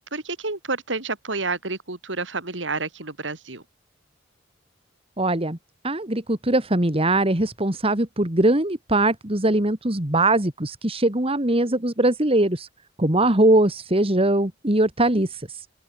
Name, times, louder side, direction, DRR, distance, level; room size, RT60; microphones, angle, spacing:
voice 1, 0.1-3.6, right 3 dB, 85° right, 3.6 m, -29 dB
voice 2, 5.2-5.6 5.8-12.7 13.0-15.7, right 1 dB, 30° right, 2.5 m, -21 dB
open air
head